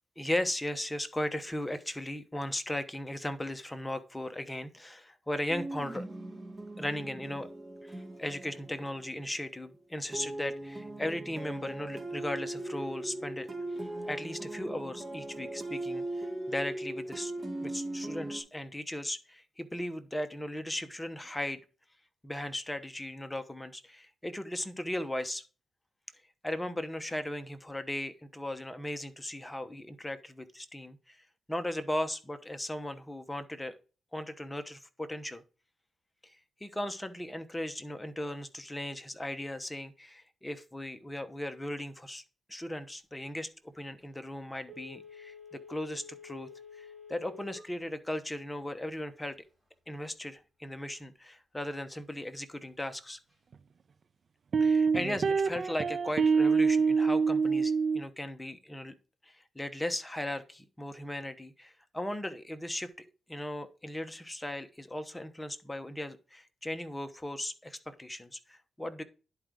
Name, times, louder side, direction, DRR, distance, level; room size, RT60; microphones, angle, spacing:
voice 1, 0.2-6.0 6.8-7.5 7.8-13.5 14.1-17.3 17.6-21.6 22.2-25.4 26.4-31.2 31.5-33.7 34.1-35.4 36.6-42.2 42.5-46.5 46.8-49.4 49.9-53.2 54.6-58.9 59.2-69.0, left 1 dB, 10° left, 9 dB, 1.0 m, -37 dB
sound 1, 5.5-9.5 10.1-18.4, right 1 dB, 25° right, 2.3 m, -39 dB
Telephone, 44.6-47.7 48.1-48.2, left 5 dB, 5° right, 3.2 m, -49 dB
sound 2, 53.5-53.6 54.5-58.0, right 5 dB, 50° right, 0.5 m, -25 dB
10.5 x 4.7 x 3.8 m, 0.34 s
cardioid pair, 95°, 0 cm